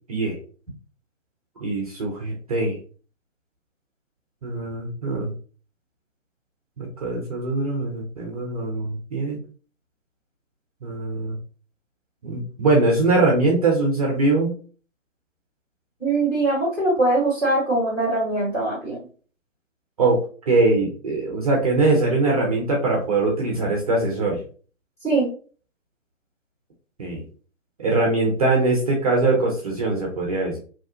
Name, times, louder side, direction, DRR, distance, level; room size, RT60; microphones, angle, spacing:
voice 1, 1.6-2.8 4.4-5.3 6.8-9.4 10.8-11.4 12.2-14.5 20.0-20.2 20.5-24.4 27.0-27.2 27.8-30.6, right 2 dB, 30° right, -1 dB, 0.5 m, -22 dB
voice 2, 16.0-19.0 25.0-25.3, right 2 dB, 5° left, -6 dB, 1.1 m, -22 dB
2.8 x 2.2 x 2.6 m, 0.40 s
figure-of-eight pair, 135°, 39 cm